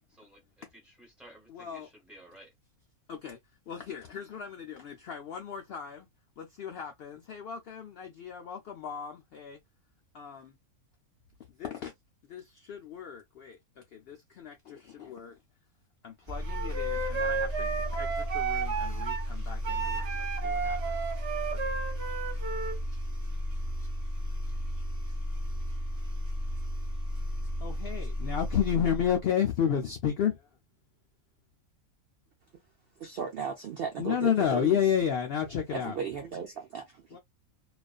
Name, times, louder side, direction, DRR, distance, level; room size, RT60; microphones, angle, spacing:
voice 1, 0.1-2.5, right 1 dB, ahead, 0.9 m, -54 dB
voice 2, 1.5-1.9 3.1-3.4 3.7-6.1 6.4-9.6 10.1-10.5 11.6-11.9 12.3-13.6 13.9-15.4 16.0-21.0 27.6-30.5 34.0-36.0 37.1-37.2, left 8 dB, 85° left, 0.5 m, -32 dB
sound 1, 16.3-29.2, equal, 20° right, 1.0 m, -34 dB
Wind instrument woodwind instrument, 16.5-19.3 19.6-22.8, right 5 dB, 55° right, 0.9 m, -33 dB
voice 3, 33.0-34.8 35.7-37.2, right 6 dB, 80° right, 0.5 m, -36 dB
2.4 x 2.3 x 2.3 m
omnidirectional pair, 1.6 m